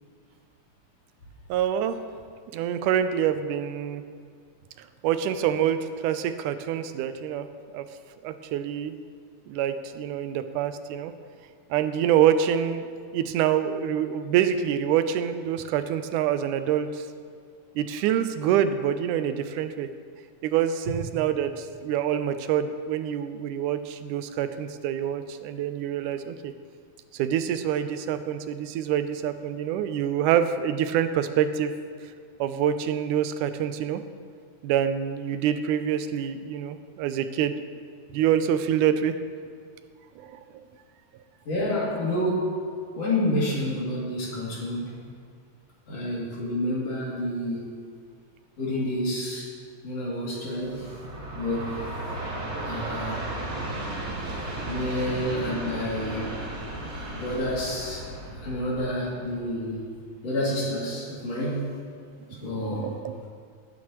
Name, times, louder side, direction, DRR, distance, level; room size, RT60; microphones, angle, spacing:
voice 1, 1.5-2.0 2.5-4.0 5.0-7.5 7.7-7.9 8.2-8.9 9.5-11.1 11.7-12.9 13.1-17.0 17.8-19.9 20.4-26.5 27.1-31.7 32.4-34.0 34.6-37.7 38.1-39.1 40.2-40.4 54.3-54.5 62.3-63.1, right 9 dB, 90° right, 10 dB, 2.1 m, -26 dB
voice 2, 41.5-42.6 42.9-45.0 45.9-47.7 48.6-49.5 49.8-50.9 51.4-51.7 52.7-53.3 54.6-56.3 57.1-58.1 58.4-59.9 60.2-61.8 62.4-62.9, left 1 dB, 55° left, -6 dB, 3.7 m, -29 dB
Train, 50.6-59.8, right 2 dB, 25° right, 1.7 m, -35 dB
18.5 x 9.4 x 3.0 m, 2.1 s
omnidirectional pair, 3.5 m